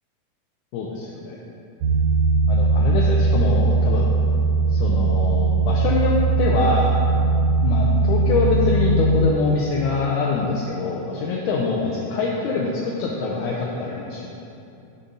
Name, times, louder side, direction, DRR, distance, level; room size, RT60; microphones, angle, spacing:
voice 1, 0.7-1.4 2.5-4.1 4.7-7.0 7.6-14.3, left 3 dB, 80° left, -3 dB, 1.9 m, -25 dB
sound 1, 1.8-9.3, right 3 dB, 80° right, 1.5 m, -19 dB
11.0 x 4.2 x 3.9 m, 2.7 s
omnidirectional pair, 3.7 m